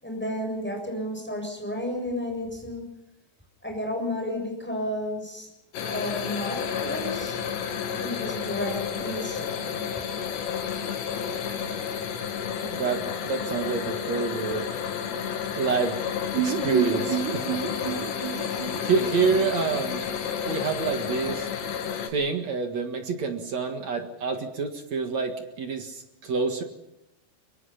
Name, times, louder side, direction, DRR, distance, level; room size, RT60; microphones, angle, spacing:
voice 1, 0.0-2.9 3.6-5.5 5.8-7.4 8.0-9.7, left 1 dB, ahead, 1 dB, 6.9 m, -32 dB
sound 1, 5.7-22.1, left 7 dB, 80° left, 4.2 m, -31 dB
voice 2, 12.6-14.7 15.6-16.0 16.4-17.6 18.3-20.1 20.5-21.5 22.1-26.6, right 5 dB, 50° right, 5 dB, 2.5 m, -28 dB
sound 2, 16.3-20.2 20.5-20.6 20.9-21.0, right 10 dB, 90° right, 3.7 m, -31 dB
24.0 x 23.5 x 5.8 m, 0.86 s
omnidirectional pair, 4.8 m